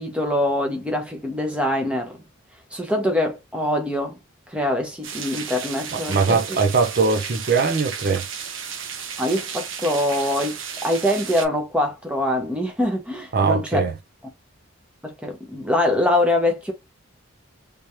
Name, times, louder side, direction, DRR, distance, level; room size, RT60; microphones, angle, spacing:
voice 1, 0.0-2.2 2.7-4.2 4.5-6.4 9.2-13.8 15.0-16.7, left 1 dB, 5° right, 1.0 m, -24 dB
sound 1, 5.0-11.5, right 7 dB, 70° right, 0.8 m, -33 dB
voice 2, 5.9-8.2 13.3-13.9, right 4 dB, 45° right, 0.5 m, -21 dB
3.4 x 3.1 x 2.8 m
head